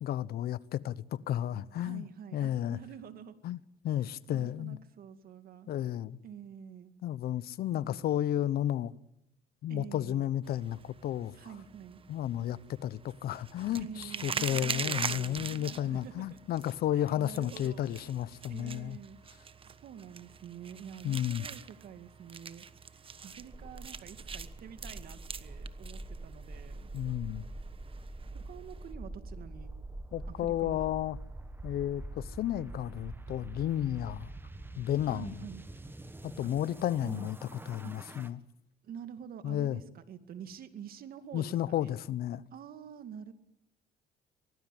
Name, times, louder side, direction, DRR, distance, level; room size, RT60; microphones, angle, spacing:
voice 1, 0.0-2.0 2.3-2.8 3.4-3.6 3.8-4.8 5.7-6.2 7.0-8.9 9.6-11.3 12.1-19.0 21.0-21.5 26.9-27.4 30.1-31.2 31.6-34.3 34.8-35.4 36.2-37.4 37.7-38.4 39.4-39.8 41.3-42.4, left 12 dB, 65° left, 1.0 m, -32 dB
voice 2, 1.8-3.4 4.0-5.7 6.2-6.9 7.8-8.1 9.7-10.3 11.3-12.0 13.8-16.4 17.0-17.9 18.5-22.7 22.9-26.9 28.5-29.7 30.3-30.9 35.1-35.6 37.0-37.3 37.8-37.9 38.8-41.9 42.5-43.3, right 8 dB, 60° right, 2.3 m, -47 dB
sound 1, 10.4-28.9, right 6 dB, 30° right, 1.3 m, -43 dB
sound 2, 23.3-38.3, right 2 dB, 10° right, 1.6 m, -45 dB
25.0 x 18.5 x 9.3 m
cardioid pair, 110°, 17 cm